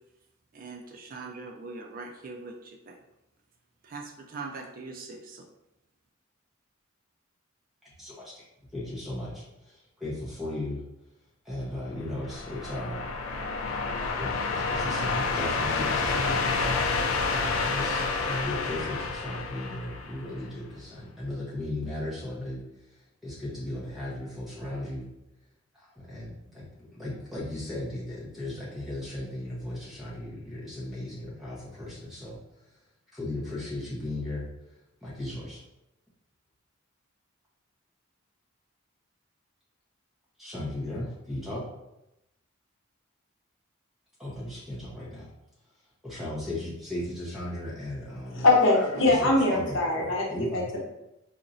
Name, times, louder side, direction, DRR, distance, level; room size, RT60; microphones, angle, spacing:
voice 1, 0.5-3.0 3.8-5.5, right 3 dB, 40° right, 1 dB, 0.4 m, -41 dB
voice 2, 8.0-8.4 8.7-10.8 11.4-13.1 14.2-16.9 17.3-22.6 23.2-25.1 25.7-32.4 33.1-34.5 35.0-35.6 40.4-41.7 44.2-45.3 46.0-48.5 49.0-50.7, left 1 dB, ahead, -8 dB, 1.1 m, -36 dB
sound 1, 12.0-20.4, left 4 dB, 85° left, 0.4 m, -29 dB
voice 3, 48.3-50.8, left 2 dB, 65° left, -1 dB, 0.8 m, -23 dB
4.2 x 2.8 x 2.6 m, 0.89 s
head